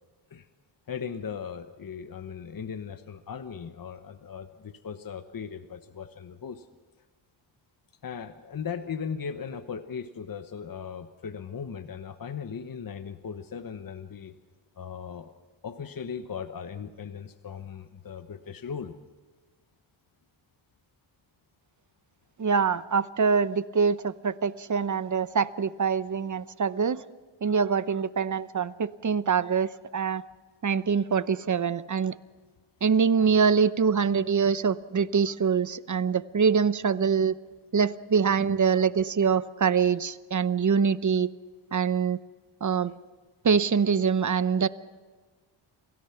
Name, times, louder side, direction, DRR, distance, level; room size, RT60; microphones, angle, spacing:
voice 1, 0.9-6.7 8.0-14.3 14.8-15.3 15.6-18.9, left 7 dB, 45° left, 9 dB, 1.1 m, -38 dB
voice 2, 22.4-27.0 27.4-30.2 30.6-32.1 32.8-37.3 37.7-41.3 41.7-42.2 42.6-42.9 43.4-44.7, right 6 dB, 40° right, 15 dB, 0.8 m, -24 dB
27.0 x 17.0 x 5.9 m, 1.4 s
cardioid pair, 90°, 47 cm